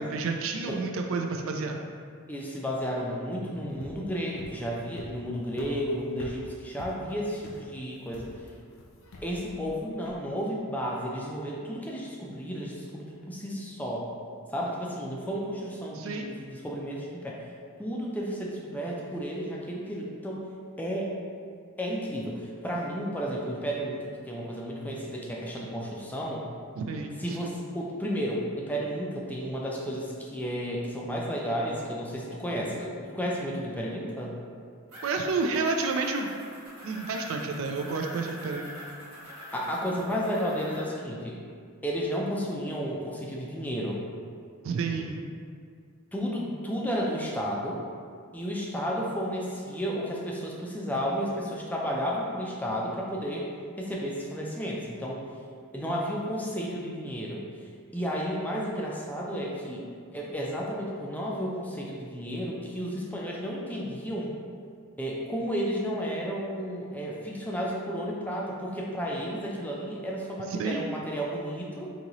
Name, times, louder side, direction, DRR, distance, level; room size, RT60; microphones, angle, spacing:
voice 1, 0.0-1.8 15.9-16.3 26.8-27.6 35.0-36.3 36.8-38.7 44.6-45.3 70.6-70.9, right 4 dB, 70° right, 3 dB, 0.3 m, -30 dB
voice 2, 2.3-8.3 9.2-14.1 14.5-17.4 17.8-20.4 20.8-21.2 21.8-26.5 27.2-34.4 39.5-41.4 41.8-44.0 46.1-47.8 48.3-53.5 53.8-55.2 55.7-57.4 57.9-59.9 60.1-64.3 65.0-71.9, equal, 10° left, -3 dB, 0.4 m, -32 dB
sound 1, 3.7-10.2, left 1 dB, 75° left, 0.5 m, -47 dB
sound 2, 34.9-40.8, equal, 90° right, 1.1 m, -44 dB
3.9 x 2.8 x 2.9 m, 2.2 s
head